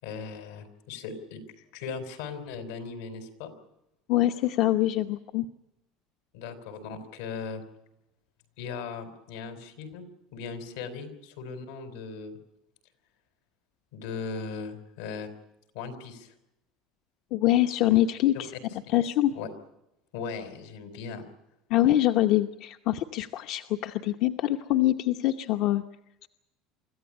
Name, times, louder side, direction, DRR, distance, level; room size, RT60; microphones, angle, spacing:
voice 1, 0.0-1.4 1.7-3.5 6.3-7.6 8.6-10.1 10.3-12.4 13.9-15.3 15.7-16.3 19.3-19.5 20.1-21.3, left 5 dB, 90° left, 8 dB, 4.5 m, -38 dB
voice 2, 4.1-5.5 17.3-18.5 18.9-19.3 21.7-25.8 26.2-26.3, left 14 dB, 55° left, 7 dB, 0.9 m, -24 dB
25.0 x 14.5 x 9.9 m, 0.88 s
cardioid pair, 150°, 0 cm